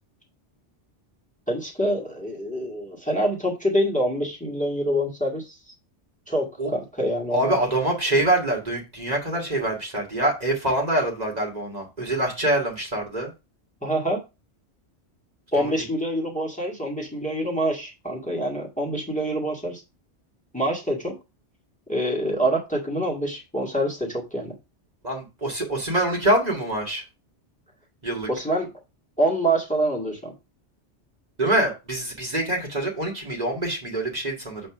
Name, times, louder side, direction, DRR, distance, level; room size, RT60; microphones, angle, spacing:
voice 1, 1.5-5.6 6.3-7.5 13.8-14.2 15.5-19.8 20.5-21.2 21.9-24.5 28.3-28.7 29.2-30.3, right 1 dB, 5° left, -2 dB, 1.9 m, -26 dB
voice 2, 7.3-13.3 15.6-15.7 25.0-27.0 28.0-28.3 31.4-34.6, right 1 dB, 35° right, -1 dB, 1.9 m, -25 dB
7.8 x 3.3 x 6.0 m, 0.26 s
omnidirectional pair, 1.2 m